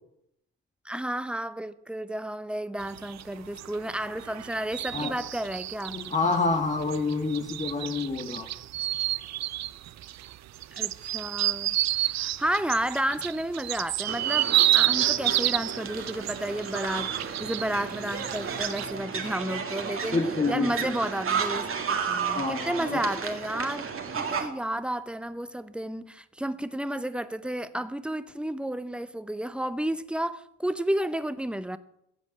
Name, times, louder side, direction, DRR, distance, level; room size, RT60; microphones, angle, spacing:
voice 1, 0.8-6.0 10.7-11.8 12.1-20.2 20.5-23.8 24.2-31.8, right 1 dB, 5° right, 0.8 m, -32 dB
sound 1, 2.8-18.9, right 14 dB, 65° right, 0.6 m, -29 dB
voice 2, 5.9-8.5 20.1-20.9 22.3-23.0, left 3 dB, 25° left, 1.6 m, -28 dB
sound 2, 14.1-24.5, right 6 dB, 45° right, 2.1 m, -33 dB
16.0 x 5.3 x 8.6 m
cardioid pair, 90°, 30 cm